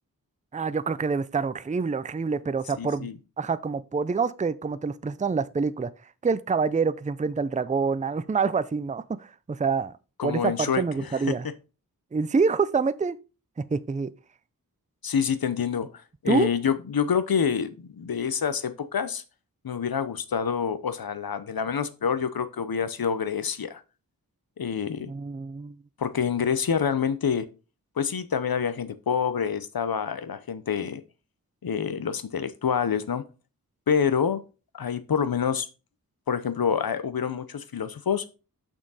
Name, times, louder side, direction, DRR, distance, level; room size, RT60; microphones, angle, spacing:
voice 1, 0.5-3.1 3.4-5.9 6.2-9.9 10.2-11.5 12.1-13.2 13.7-14.1 16.3-16.5 25.1-25.8, right 5 dB, 20° right, 0.4 m, -26 dB
voice 2, 2.8-3.2 10.2-11.3 15.0-15.9 16.2-19.2 19.6-23.8 24.6-25.1 26.0-27.4 28.0-31.0 31.6-33.2 33.9-34.4 34.7-35.7 36.3-38.2, left 7 dB, 80° left, 0.8 m, -27 dB
6.5 x 6.1 x 4.1 m
wide cardioid pair, 55°, 35 cm